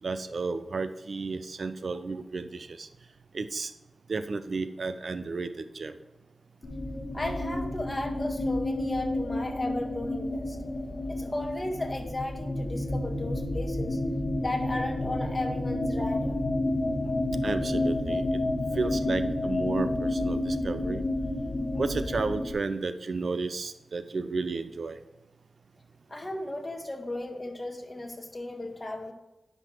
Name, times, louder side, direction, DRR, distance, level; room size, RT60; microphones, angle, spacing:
voice 1, 0.0-2.9 3.3-3.7 4.1-6.0 17.4-18.4 18.7-21.0 21.8-25.0, right 4 dB, 65° right, 11 dB, 0.7 m, -32 dB
sound 1, 6.6-22.5, left 1 dB, 50° left, 1.7 m, -30 dB
voice 2, 7.1-10.6 11.1-14.0 14.4-16.4 26.1-29.1, left 1 dB, 30° left, 3 dB, 1.7 m, -35 dB
10.0 x 5.7 x 4.6 m, 1.0 s
cardioid pair, 45°, 0 cm